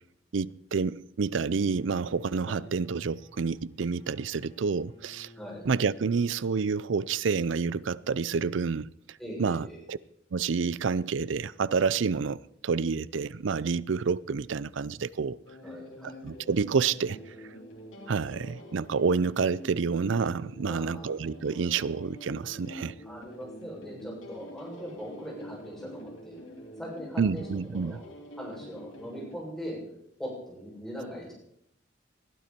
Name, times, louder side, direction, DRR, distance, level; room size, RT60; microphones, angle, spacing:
voice 1, 0.3-5.3 5.7-10.0 10.3-15.4 16.0-17.2 18.1-22.9 27.2-28.0, right 5 dB, 75° right, 0.5 m, -29 dB
Bowed string instrument, 1.4-7.5, left 1 dB, 40° left, 5.3 m, -54 dB
voice 2, 9.2-9.8 15.6-16.2 20.6-21.1 23.0-26.4 26.8-27.5 27.7-28.0 28.4-29.8 30.2-31.3, equal, ahead, 7.0 m, -40 dB
sound 1, 15.5-29.4, equal, 90° left, 3.3 m, -46 dB
20.5 x 12.5 x 4.5 m
head